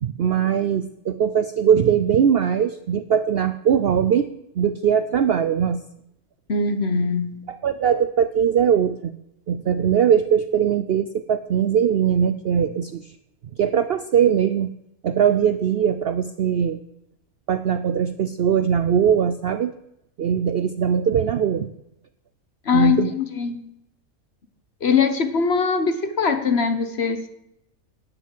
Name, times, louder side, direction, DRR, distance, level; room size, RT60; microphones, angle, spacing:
voice 1, 0.0-4.3 4.6-5.8 7.5-9.1 9.5-13.1 13.6-14.7 15.0-16.8 17.5-19.7 20.2-21.7 22.7-23.1, right 8 dB, 65° right, 12 dB, 0.6 m, -20 dB
voice 2, 6.5-7.4 22.6-23.6 24.8-27.3, left 5 dB, 50° left, 9 dB, 1.2 m, -21 dB
10.5 x 9.1 x 7.5 m, 0.81 s
omnidirectional pair, 1.5 m